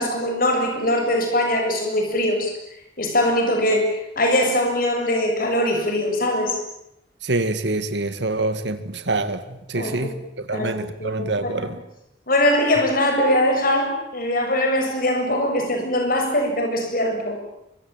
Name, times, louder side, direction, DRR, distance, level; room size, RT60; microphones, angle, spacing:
voice 1, 0.0-2.5 3.0-6.6 9.7-10.2 10.5-10.7 11.0-11.7 12.3-17.4, left 1 dB, 50° left, 7.1 m, -22 dB
voice 2, 7.2-10.1 10.5-11.8, right 2 dB, 75° right, 2.1 m, -25 dB
24.5 x 24.5 x 9.0 m
head